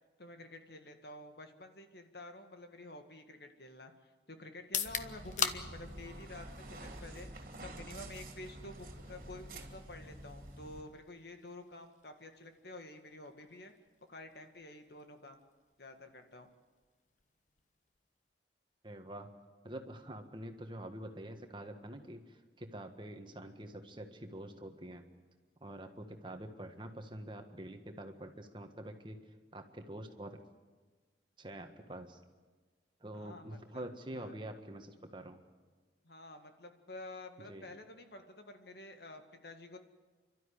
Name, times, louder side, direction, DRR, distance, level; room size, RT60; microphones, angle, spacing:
voice 1, 0.2-7.3 7.6-13.7 14.1-15.4 15.8-16.5 33.1-33.8 34.1-34.4 36.0-39.8, left 2 dB, 65° left, 6 dB, 2.0 m, -50 dB
sound 1, 4.6-18.4, left 7 dB, 45° left, 1.1 m, -45 dB
sound 2, 4.8-10.8, right 1 dB, 50° right, 2.7 m, -48 dB
voice 2, 18.8-19.3 19.6-25.1 25.6-30.4 31.4-32.2 33.0-35.4 37.5-37.7, right 1 dB, 25° right, 6 dB, 1.6 m, -46 dB
30.0 x 12.5 x 10.0 m, 1.3 s
head